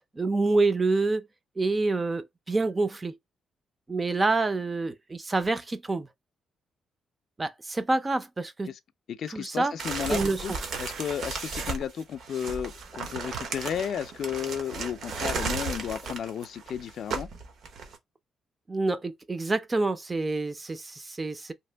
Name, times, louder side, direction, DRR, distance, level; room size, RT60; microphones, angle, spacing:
voice 1, 0.2-1.2 1.6-3.2 3.9-6.1 7.4-8.7 9.3-9.7 10.1-10.4 18.7-21.5, right 3 dB, 20° right, 0.4 m, -27 dB
voice 2, 9.1-17.3, left 8 dB, 60° left, 0.4 m, -33 dB
sound 1, 9.8-18.0, right 4 dB, 65° right, 0.8 m, -34 dB
2.8 x 2.5 x 3.3 m
cardioid pair, 125°, 0 cm